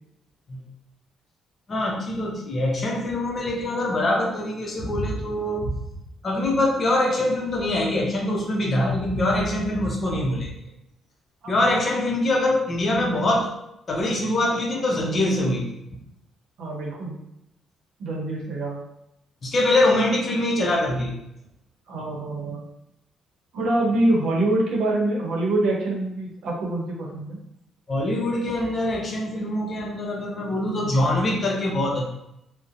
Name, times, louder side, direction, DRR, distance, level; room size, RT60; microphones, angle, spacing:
voice 1, 1.7-5.7 6.2-10.5 11.5-13.5 13.9-15.7 19.4-21.2 27.9-32.0, left 1 dB, 40° left, -1 dB, 0.6 m, -23 dB
voice 2, 16.6-17.1 18.0-18.8 21.9-22.6 23.5-27.4, right 2 dB, 75° right, -2 dB, 0.7 m, -25 dB
2.7 x 2.1 x 2.5 m, 0.82 s
cardioid pair, 80°, 0 cm